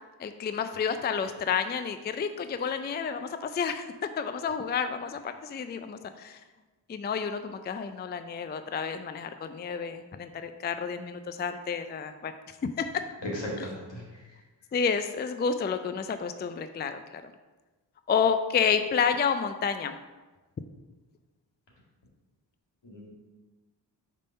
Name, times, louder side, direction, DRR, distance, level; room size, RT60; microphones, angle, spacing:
voice 1, 0.2-6.4 6.9-12.3 12.8-13.0 13.6-13.7 14.7-17.2 18.1-20.0, left 6 dB, 25° left, 9 dB, 0.4 m, -30 dB
voice 2, 13.3-14.0 22.8-23.1, equal, 75° left, -3 dB, 2.0 m, -36 dB
5.1 x 3.6 x 5.5 m, 1.2 s
cardioid pair, 45°, 44 cm